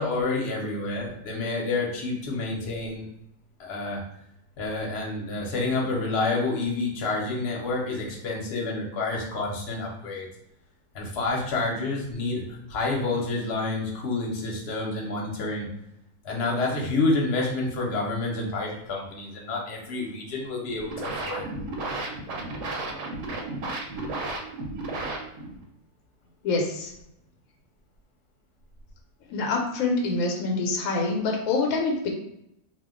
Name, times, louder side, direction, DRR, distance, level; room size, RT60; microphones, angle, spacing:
voice 1, 0.0-3.1 3.6-4.0 4.6-10.3 10.9-15.7 16.2-21.5, left 3 dB, 55° left, -2 dB, 0.9 m, -28 dB
sound 1, 20.6-25.6, right 2 dB, 70° right, 0.8 m, -33 dB
voice 2, 26.4-26.9 29.3-32.1, left 3 dB, 85° left, 2 dB, 1.0 m, -26 dB
2.3 x 2.2 x 3.5 m, 0.79 s
omnidirectional pair, 1.4 m